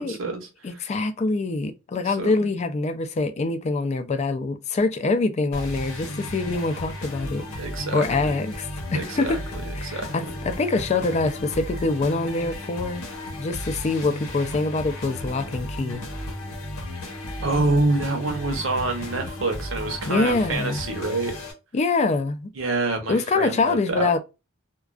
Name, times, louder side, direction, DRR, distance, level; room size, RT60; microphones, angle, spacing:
voice 1, 0.0-0.5 2.1-2.3 7.6-8.3 8.9-9.4 9.8-10.3 17.4-21.4 22.6-24.2, right 3 dB, 65° right, 0.8 m, -27 dB
voice 2, 0.6-7.4 7.9-9.4 9.7-13.0 13.4-16.0 20.1-20.8 21.7-22.5 23.1-24.2, left 3 dB, 30° left, 0.3 m, -25 dB
sound 1, 5.5-21.5, left 1 dB, 85° left, 0.8 m, -34 dB
2.3 x 2.2 x 2.3 m
head